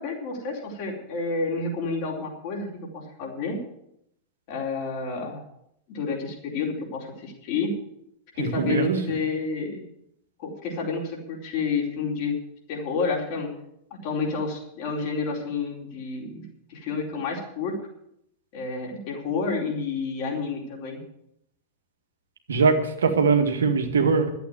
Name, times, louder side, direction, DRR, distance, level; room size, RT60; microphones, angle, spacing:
voice 1, 0.0-3.6 4.5-5.4 5.9-7.8 8.4-9.8 10.4-12.3 12.7-13.5 14.0-16.4 16.7-17.8 18.5-21.0, left 4 dB, 45° left, -1 dB, 4.3 m, -29 dB
voice 2, 8.4-9.0 22.5-24.3, right 5 dB, 70° right, 4 dB, 1.9 m, -21 dB
12.0 x 8.3 x 9.4 m, 0.75 s
figure-of-eight pair, 90°, 0 cm